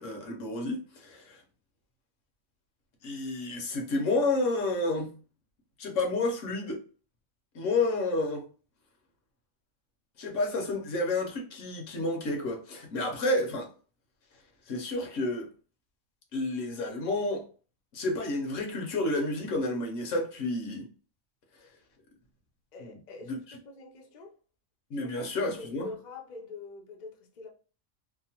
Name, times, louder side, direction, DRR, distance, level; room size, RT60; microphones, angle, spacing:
voice 1, 0.0-1.4 3.0-5.1 5.8-6.8 7.5-8.4 10.2-13.7 14.7-15.5 16.3-17.4 17.9-20.9 22.8-23.0 23.3-23.4 24.9-25.9, left 2 dB, 70° left, 1.1 m, -30 dB
voice 2, 22.7-24.4 25.0-27.5, left 3 dB, 50° left, 0.5 m, -45 dB
2.8 x 2.1 x 2.8 m
omnidirectional pair, 1.4 m